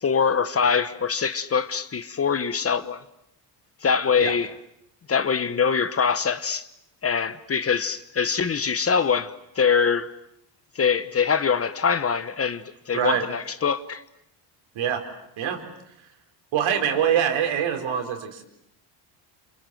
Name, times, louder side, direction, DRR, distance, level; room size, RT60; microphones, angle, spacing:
voice 1, 0.0-3.0 3.8-4.5 5.1-6.7 7.0-10.1 10.7-14.0, left 6 dB, 30° left, 1.1 m, -23 dB
voice 2, 12.9-13.3 14.7-15.1 15.4-15.6 16.5-18.4, right 9 dB, 70° right, 4.5 m, -24 dB
27.5 x 27.5 x 7.8 m
cardioid pair, 120°, 48 cm